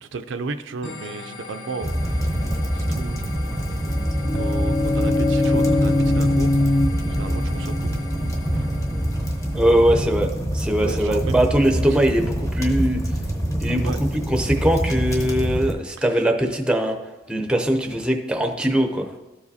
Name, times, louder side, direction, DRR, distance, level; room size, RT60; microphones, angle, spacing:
voice 1, 0.0-2.3 2.7-3.3 4.3-6.5 7.2-8.0 8.5-8.7 10.8-11.4 11.8-11.9 13.8-14.0, right 4 dB, 80° right, 9 dB, 0.4 m, -33 dB
sound 1, 0.8-10.2, left 3 dB, 70° left, 0.8 m, -40 dB
sound 2, 1.8-15.7, equal, 15° left, 0.9 m, -25 dB
sound 3, 3.8-9.6, left 2 dB, 35° left, 0.6 m, -23 dB
voice 2, 9.5-13.0 13.6-13.9 14.3-17.0 17.3-19.1, right 1 dB, 5° right, 4 dB, 0.6 m, -21 dB
13.0 x 4.9 x 2.7 m, 1.1 s
head